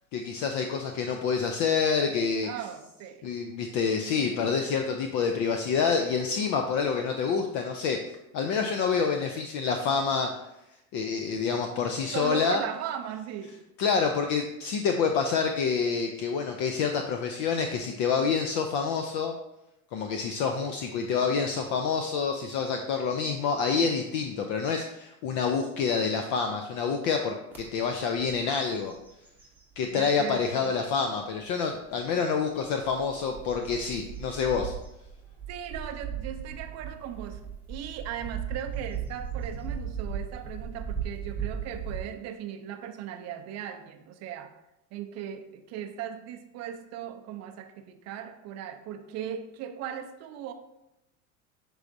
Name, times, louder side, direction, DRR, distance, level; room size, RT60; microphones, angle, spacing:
voice 1, 0.1-2.5 3.2-8.0 8.3-10.4 10.9-12.6 13.8-19.3 19.9-28.9 29.8-34.7, left 5 dB, 45° left, 4 dB, 0.5 m, -27 dB
voice 2, 2.4-3.2 12.1-13.6 29.9-30.7 35.5-37.4 37.7-44.5 44.9-50.5, right 9 dB, 40° right, 7 dB, 0.5 m, -37 dB
sound 1, 27.5-27.6 28.1-28.4 28.7-30.2 30.8-30.9 32.6-42.0, right 7 dB, 5° right, 0.8 m, -37 dB
6.1 x 3.3 x 2.6 m, 0.88 s
hypercardioid pair, 95°, 43 cm